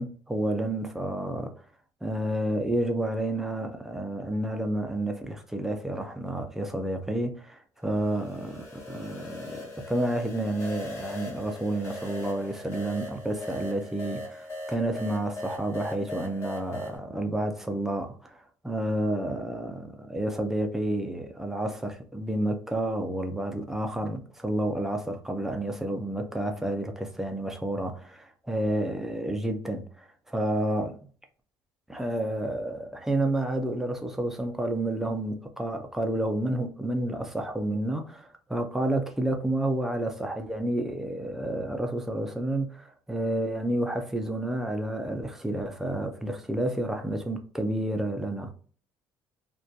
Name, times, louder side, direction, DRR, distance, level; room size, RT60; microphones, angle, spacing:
voice 1, 0.0-1.5 2.0-9.6 9.9-31.0 31.9-48.5, right 1 dB, 5° right, 0.3 m, -30 dB
sound 1, 7.9-17.0, left 1 dB, 35° left, 1.0 m, -40 dB
2.6 x 2.1 x 2.3 m
cardioid pair, 175°, 8 cm